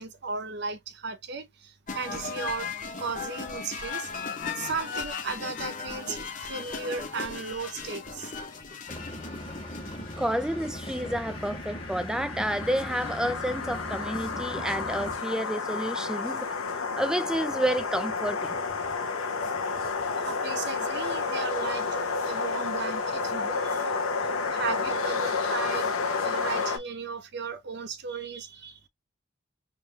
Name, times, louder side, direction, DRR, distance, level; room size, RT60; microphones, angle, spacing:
voice 1, 0.0-2.7 3.0-4.1 4.5-8.3 20.2-28.9, right 4 dB, 50° right, 0.6 m, -36 dB
sound 1, 1.9-10.4, left 5 dB, 35° left, 0.8 m, -37 dB
sound 2, 8.9-15.2, equal, 20° left, 1.7 m, -39 dB
voice 2, 10.2-18.6, right 1 dB, 5° right, 0.4 m, -30 dB
sound 3, 10.6-26.8, left 4 dB, 90° left, 1.0 m, -31 dB
3.7 x 3.2 x 2.8 m
head